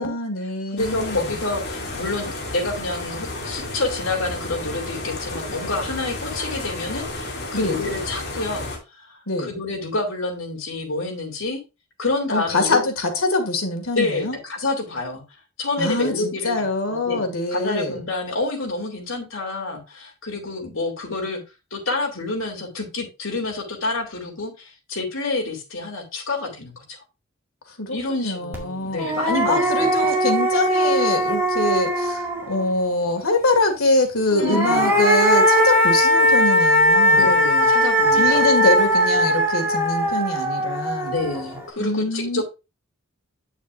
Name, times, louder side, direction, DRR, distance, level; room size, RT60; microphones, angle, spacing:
voice 1, 0.0-1.3 7.5-8.0 9.3-9.5 12.3-14.4 15.8-18.0 27.8-29.1 29.4-37.3 38.2-41.1 41.8-42.4, left 2 dB, 85° left, 2.0 m, -24 dB
voice 2, 0.7-11.6 12.0-12.9 13.9-15.2 15.6-17.2 17.5-21.4 21.7-27.0 27.9-29.9 34.4-34.9 37.1-38.5 41.1-42.4, left 2 dB, 70° left, 2.8 m, -28 dB
sound 1, 0.8-8.8, left 2 dB, 50° left, 2.5 m, -32 dB
sound 2, 28.5-28.6 29.0-32.7 34.3-41.6, equal, 10° right, 2.0 m, -19 dB
8.6 x 7.1 x 2.5 m
head